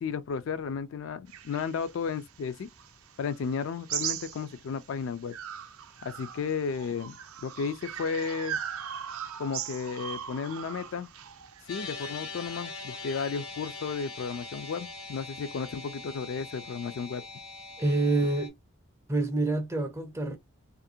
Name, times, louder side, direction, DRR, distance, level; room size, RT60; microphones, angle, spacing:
voice 1, 0.0-2.7 3.2-5.4 6.0-7.2 7.4-8.6 9.4-11.1 11.7-17.2, left 6 dB, 60° left, 0.3 m, -33 dB
sound 1, 1.3-4.9 5.3-12.0, right 9 dB, 75° right, 0.4 m, -39 dB
sound 2, 11.7-18.5, left 3 dB, 85° left, 1.2 m, -42 dB
voice 2, 17.8-18.5 19.1-20.4, right 2 dB, 15° right, 0.4 m, -27 dB
2.4 x 2.1 x 2.6 m
head